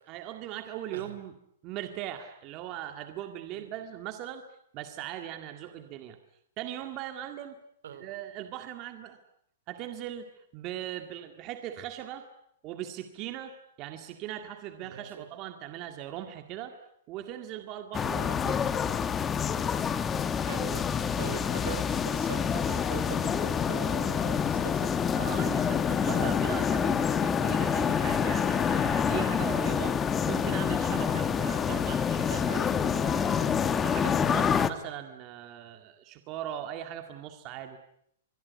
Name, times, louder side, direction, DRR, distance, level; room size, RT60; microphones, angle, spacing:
voice 1, 0.1-1.3 1.6-4.4 4.7-6.2 6.6-7.6 7.9-9.2 9.7-12.3 12.6-16.8 17.1-18.7 25.2-30.0 30.2-37.8, right 11 dB, 30° right, 7 dB, 1.9 m, -39 dB
voice 2, 14.8-15.2 18.0-18.4 20.4-20.9 21.2-25.0 32.4-32.7, right 8 dB, 75° right, 12 dB, 4.5 m, -42 dB
sound 1, 17.9-34.7, left 7 dB, 15° left, 1.1 m, -27 dB
25.5 x 22.0 x 9.3 m, 0.70 s
hypercardioid pair, 160°, 0 cm